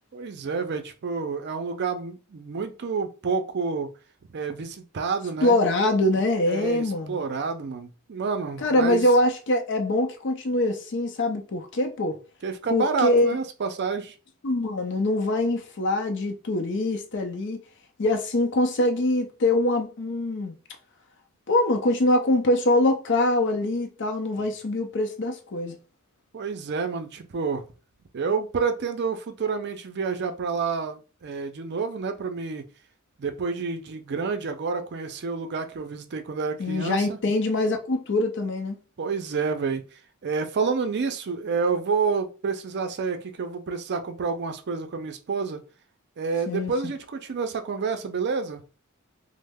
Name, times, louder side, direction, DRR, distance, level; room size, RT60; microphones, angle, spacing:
voice 1, 0.1-3.9 4.3-5.6 6.5-9.1 12.4-14.1 26.3-27.7 28.1-32.7 33.2-37.2 39.0-39.8 40.2-45.6 46.2-48.6, right 5 dB, 55° right, 0.5 m, -29 dB
voice 2, 5.4-7.2 8.6-12.2 12.7-13.4 14.4-17.6 18.0-20.5 21.5-25.8 36.6-38.8 46.5-46.7, left 1 dB, 60° left, 0.6 m, -23 dB
3.1 x 2.0 x 3.4 m
head